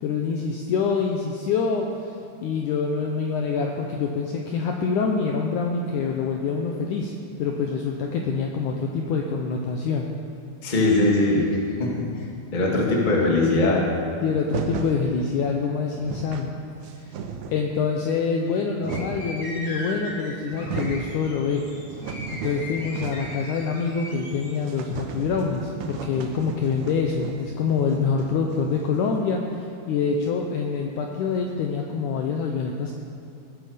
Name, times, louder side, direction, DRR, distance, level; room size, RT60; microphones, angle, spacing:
voice 1, 0.0-2.1 2.4-7.1 7.4-10.1 14.2-16.5 17.0-17.1 17.5-21.7 22.4-33.0, left 5 dB, 85° left, 1 dB, 1.8 m, -26 dB
voice 2, 10.6-11.5 11.8-12.1 12.5-13.8, left 2 dB, 60° left, -2 dB, 0.4 m, -20 dB
sound 1, 14.5-15.0 15.6-15.7 15.9-16.5 16.8-17.7 18.4-19.3 20.1-20.2 20.5-21.1 21.5-23.4 23.7-23.8 24.1-24.2 24.6-29.1, right 5 dB, 75° right, 1.8 m, -35 dB
sound 2, 18.9-24.5, left 1 dB, 35° left, 2.4 m, -38 dB
18.5 x 8.1 x 5.0 m, 2.6 s
omnidirectional pair, 4.4 m